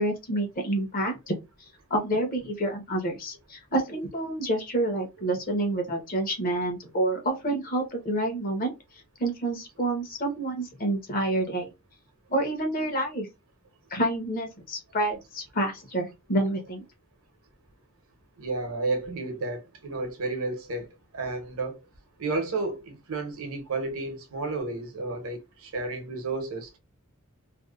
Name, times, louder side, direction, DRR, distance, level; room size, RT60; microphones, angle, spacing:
voice 1, 0.0-1.3 1.9-8.7 9.2-11.7 12.3-13.3 13.9-16.8, right 1 dB, 40° left, 0.8 m, -28 dB
voice 2, 18.4-20.9 21.1-21.8 22.2-26.8, right 3 dB, 65° right, 0.8 m, -32 dB
2.6 x 2.1 x 2.3 m
head